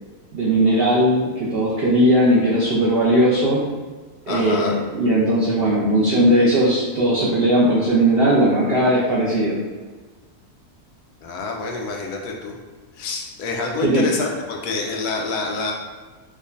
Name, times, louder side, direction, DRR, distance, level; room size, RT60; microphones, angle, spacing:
voice 1, 0.3-3.6 4.3-9.6 13.8-14.1, right 1 dB, 60° right, -7 dB, 0.6 m, -18 dB
voice 2, 4.3-4.8 11.2-12.5 13.0-15.7, left 3 dB, 85° left, 1 dB, 1.1 m, -27 dB
4.8 x 2.2 x 2.5 m, 1.4 s
omnidirectional pair, 1.6 m